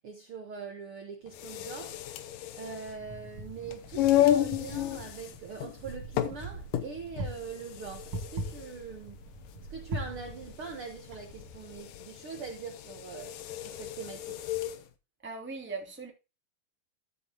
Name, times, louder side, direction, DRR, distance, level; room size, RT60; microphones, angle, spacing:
voice 1, 0.0-2.0 2.5-9.2 9.7-14.4, right 5 dB, 75° right, 1.2 m, -42 dB
sound 1, 1.3-14.8, left 12 dB, 75° left, 2.2 m, -33 dB
Wind, 2.9-11.8, right 1 dB, 50° right, 1.8 m, -42 dB
voice 2, 15.2-16.1, right 4 dB, 5° right, 1.4 m, -39 dB
13.5 x 6.9 x 2.9 m
omnidirectional pair, 4.5 m